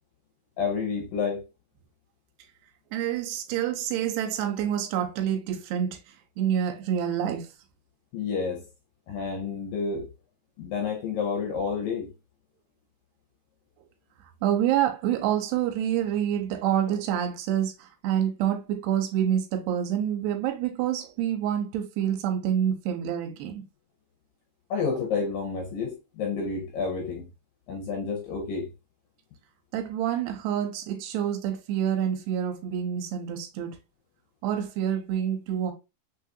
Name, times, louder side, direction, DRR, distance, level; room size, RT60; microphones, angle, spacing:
voice 1, 0.6-1.4 8.1-8.7 9.1-10.1 10.6-12.1 24.7-27.3 27.7-28.7, left 5 dB, 80° left, 2.0 m, -30 dB
voice 2, 2.9-6.0 6.4-7.5 14.4-23.6 29.7-33.8 34.4-35.7, right 10 dB, 90° right, 2.7 m, -27 dB
6.2 x 2.8 x 2.4 m
omnidirectional pair, 4.7 m